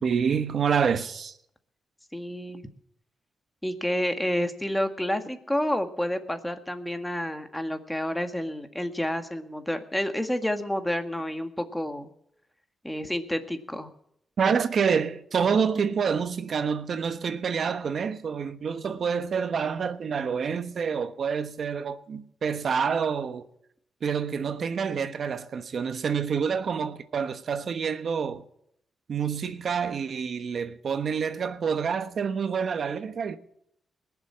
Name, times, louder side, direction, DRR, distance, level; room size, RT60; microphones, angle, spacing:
voice 1, 0.0-1.3 14.4-23.5 24.0-28.4 29.1-33.4, right 6 dB, 60° right, 1.1 m, -27 dB
voice 2, 2.1-2.6 3.6-12.1 12.8-13.9, left 1 dB, 5° left, 1.8 m, -29 dB
20.0 x 7.3 x 7.5 m
cardioid pair, 70°, 0 cm